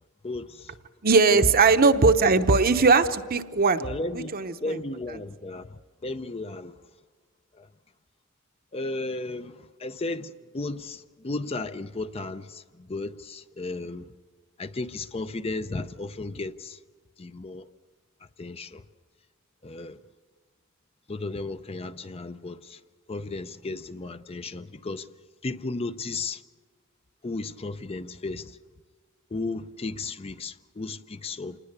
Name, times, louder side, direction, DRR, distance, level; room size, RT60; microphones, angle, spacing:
voice 1, 0.2-0.7 1.3-1.8 3.8-4.3 4.6-6.8 7.5-7.7 8.7-14.1 14.6-16.8 17.2-17.7 18.2-18.9 19.6-20.0 21.1-22.8 23.1-25.1 25.4-26.4 27.2-28.6 29.3-31.6, left 2 dB, 30° left, 0.6 m, -34 dB
voice 2, 1.0-3.8 4.1-4.8, right 4 dB, 45° right, 0.9 m, -20 dB
27.0 x 20.0 x 6.7 m
head